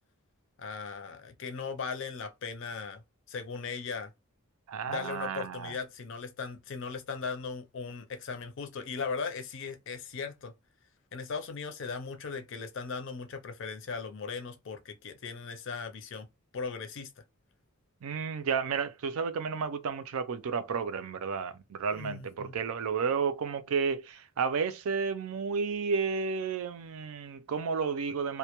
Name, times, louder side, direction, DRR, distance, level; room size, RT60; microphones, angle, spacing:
voice 1, 0.6-3.0 3.3-4.1 4.9-10.5 11.1-16.3 16.5-17.1 21.9-22.5, left 5 dB, 60° left, 0.5 m, -38 dB
voice 2, 4.7-5.7 18.0-28.4, right 5 dB, 80° right, 0.4 m, -32 dB
2.1 x 2.1 x 2.9 m
head